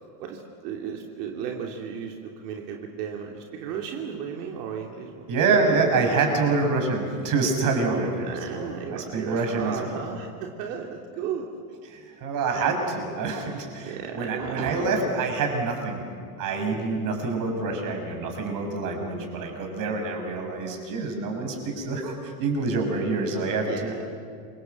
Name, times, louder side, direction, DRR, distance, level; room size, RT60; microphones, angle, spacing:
voice 1, 0.2-5.3 5.5-5.8 7.8-11.5 13.8-14.9 23.6-24.2, right 7 dB, 80° right, 1 dB, 3.0 m, -35 dB
voice 2, 5.3-10.0 11.9-16.0 16.4-23.9, right 3 dB, 45° right, 3 dB, 6.1 m, -26 dB
28.0 x 25.0 x 7.9 m, 2.2 s
supercardioid pair, 155°, 47 cm